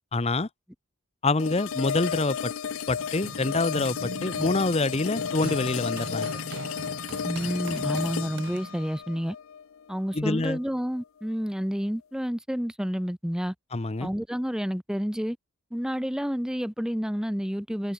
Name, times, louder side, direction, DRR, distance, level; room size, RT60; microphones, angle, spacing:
voice 1, 0.1-0.5 1.2-2.5 2.9-6.3 10.1-10.6 13.7-14.1, left 2 dB, 30° left, 0.8 m, -26 dB
sound 1, 1.4-10.4, left 7 dB, 65° left, 0.5 m, -33 dB
Run, 2.6-9.0, right 2 dB, 55° right, 1.1 m, -40 dB
voice 2, 7.2-9.4 9.9-13.5 14.0-15.4 15.7-17.9, equal, 5° right, 0.7 m, -29 dB
open air
head